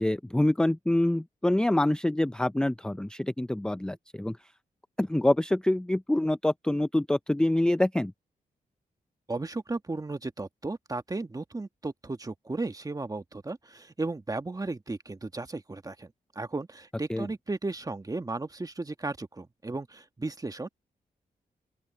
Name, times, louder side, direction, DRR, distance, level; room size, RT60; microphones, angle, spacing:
voice 1, 0.0-4.4 5.0-8.1 17.1-17.3, left 1 dB, 5° left, 0.5 m, -26 dB
voice 2, 9.3-20.7, right 3 dB, 25° right, 1.5 m, -35 dB
open air
cardioid pair, 70°, 16 cm